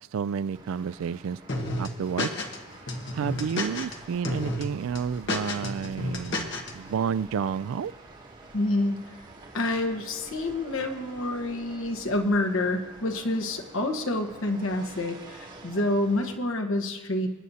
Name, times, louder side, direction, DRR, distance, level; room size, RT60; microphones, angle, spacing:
voice 1, 0.1-1.4 1.8-2.3 3.1-7.9, right 7 dB, 75° right, 0.3 m, -30 dB
sound 1, 0.5-16.4, right 2 dB, 40° right, 2.2 m, -48 dB
sound 2, 1.5-2.6 2.9-3.9 4.2-4.6 4.9-6.7, left 2 dB, 60° left, 1.4 m, -31 dB
voice 2, 8.5-9.0 9.5-17.3, left 2 dB, 80° left, 1.3 m, -28 dB
28.0 x 9.3 x 2.8 m
head